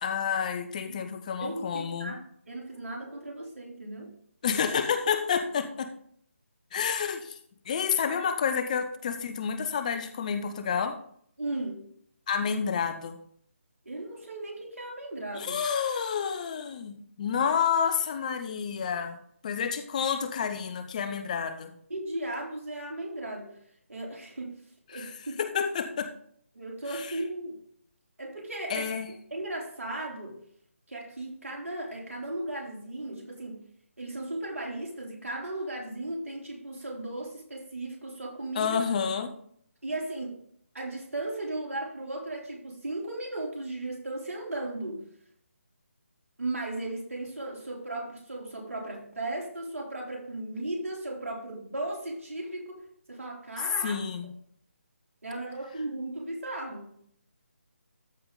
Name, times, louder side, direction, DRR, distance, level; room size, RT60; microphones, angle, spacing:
voice 1, 0.0-2.1 4.4-5.9 6.7-7.4 7.6-11.0 12.3-13.2 15.3-19.2 19.4-21.7 24.9-25.1 25.4-26.1 26.9-27.2 28.7-29.1 38.5-39.3 53.8-54.3, left 7 dB, 30° left, 1.0 m, -29 dB
voice 2, 1.4-4.2 8.1-8.2 11.4-11.9 13.9-15.6 21.9-23.6 23.9-24.6 24.9-25.4 26.5-27.6 28.2-28.9 29.3-30.4 30.9-33.7 34.0-38.8 39.8-40.4 40.7-45.1 46.4-54.0 55.2-56.9, right 2 dB, 80° right, 3.4 m, -36 dB
13.5 x 5.0 x 3.9 m
figure-of-eight pair, 155°, 7 cm